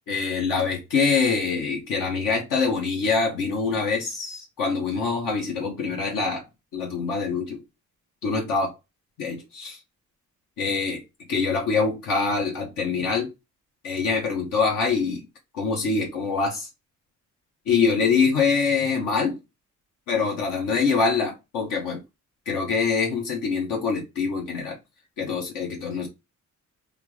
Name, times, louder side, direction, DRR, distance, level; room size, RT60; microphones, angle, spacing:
voice 1, 0.1-6.5 6.7-7.6 8.2-8.7 9.2-9.8 10.6-11.0 11.3-13.3 13.8-15.2 15.5-16.7 17.7-19.4 20.1-22.0 22.5-24.8 25.2-26.1, left 5 dB, 90° left, 1.1 m, -24 dB
3.4 x 2.6 x 3.1 m
cardioid pair, 80°, 32 cm